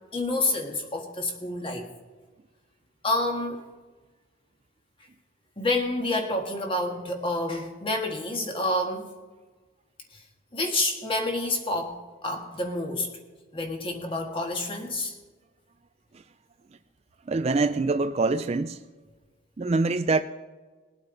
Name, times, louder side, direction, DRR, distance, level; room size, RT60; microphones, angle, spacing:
voice 1, 0.1-1.9 3.0-3.6 5.6-9.1 10.5-13.1 13.5-15.2, left 2 dB, 25° left, 1.5 m, -28 dB
voice 2, 17.3-18.8 19.6-20.2, right 3 dB, 30° right, 0.3 m, -24 dB
20.5 x 8.8 x 3.9 m
head